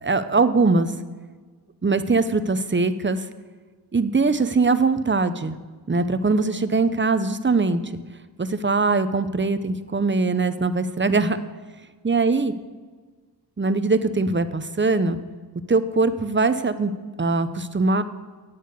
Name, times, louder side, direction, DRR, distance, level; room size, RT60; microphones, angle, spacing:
voice 1, 0.0-0.9 1.8-3.2 3.9-5.6 5.9-7.8 8.4-11.4 12.0-12.5 13.6-15.2 15.7-16.9 17.2-18.0, right 3 dB, 30° right, 12 dB, 0.7 m, -21 dB
10.5 x 8.7 x 6.8 m, 1.4 s
wide cardioid pair, 70°, 40 cm